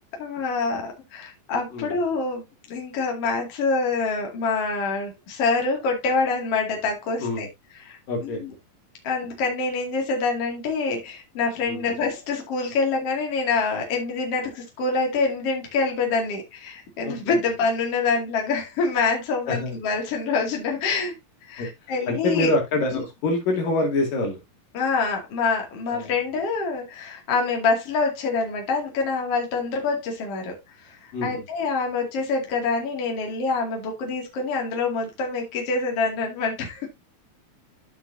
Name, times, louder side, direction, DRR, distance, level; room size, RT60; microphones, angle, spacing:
voice 1, 0.2-7.5 7.8-8.5 9.0-21.1 21.4-22.5 22.9-23.0 24.7-36.9, left 4 dB, 45° left, 1 dB, 3.1 m, -26 dB
voice 2, 8.1-8.4 11.7-11.8 17.0-17.4 19.5-19.7 21.6-21.7 22.1-24.4 25.9-26.1 31.1-31.4, left 2 dB, 70° left, 2 dB, 4.0 m, -25 dB
13.0 x 5.9 x 2.7 m, 0.20 s
omnidirectional pair, 4.0 m